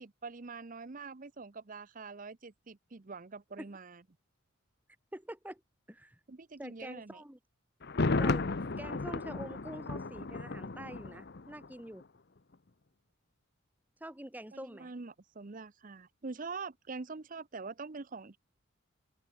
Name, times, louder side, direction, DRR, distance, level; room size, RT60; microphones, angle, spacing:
voice 1, 0.0-4.0 6.3-7.2 14.5-18.4, right 4 dB, 40° right, 0.7 m, -44 dB
voice 2, 5.1-5.6 5.9-6.2 6.6-7.4 8.2-8.5 8.8-12.0 14.0-14.9, right 1 dB, 10° right, 1.2 m, -45 dB
Thunder, 7.8-11.7 12.0-12.1, left 3 dB, 50° left, 0.8 m, -33 dB
head